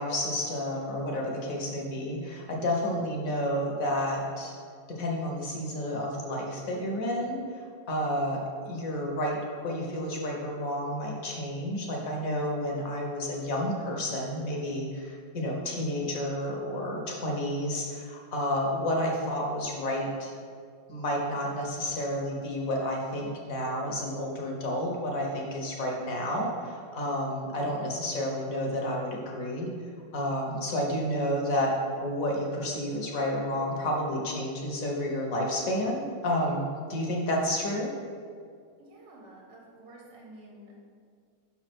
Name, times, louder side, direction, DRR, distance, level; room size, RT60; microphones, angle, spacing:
voice 1, 0.0-4.5 4.9-20.3 20.9-29.7 30.1-31.7 32.0-37.9, equal, 50° left, -1 dB, 1.3 m, -30 dB
voice 2, 38.8-40.8, right 1 dB, 70° right, -3 dB, 1.9 m, -50 dB
5.7 x 4.3 x 6.1 m, 2.2 s
omnidirectional pair, 2.1 m